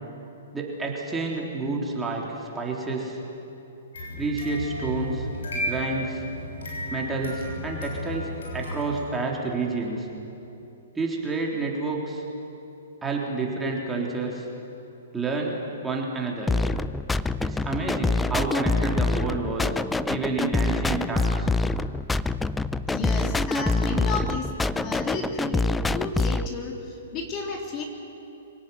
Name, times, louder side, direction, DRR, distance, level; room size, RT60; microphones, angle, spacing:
voice 1, 0.5-3.2 4.2-5.3 5.5-6.2 6.9-10.1 11.0-12.2 13.0-14.5 15.1-16.5 17.4-19.8 20.1-21.5, right 3 dB, 10° right, -2 dB, 3.6 m, -29 dB
sound 1, 3.9-9.0, left 1 dB, 80° left, 7.5 m, -33 dB
sound 2, 16.5-26.5, left 3 dB, 5° left, 0.5 m, -25 dB
voice 2, 22.9-24.5 24.8-27.8, left 3 dB, 30° left, 1 dB, 3.4 m, -32 dB
25.0 x 18.0 x 9.4 m, 2.9 s
hypercardioid pair, 135°, 0 cm